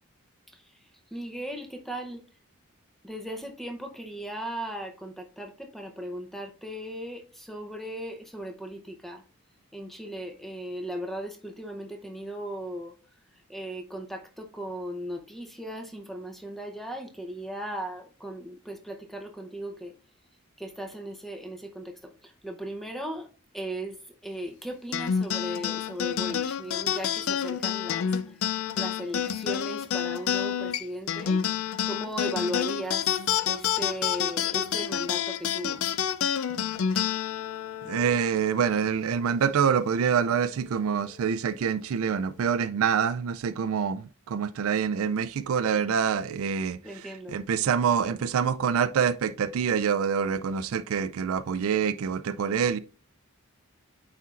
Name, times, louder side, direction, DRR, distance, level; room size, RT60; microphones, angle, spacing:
voice 1, 1.1-2.2 3.0-9.2 9.7-12.9 13.5-19.9 20.6-24.0 24.2-28.4 28.7-31.4 31.8-33.1 33.4-35.8 45.7-45.8 46.8-47.4, equal, ahead, 0.7 m, -37 dB
sound 1, 24.9-39.7, left 9 dB, 75° left, 0.4 m, -29 dB
voice 2, 37.8-52.8, right 7 dB, 75° right, 0.4 m, -26 dB
9.2 x 4.4 x 2.4 m
head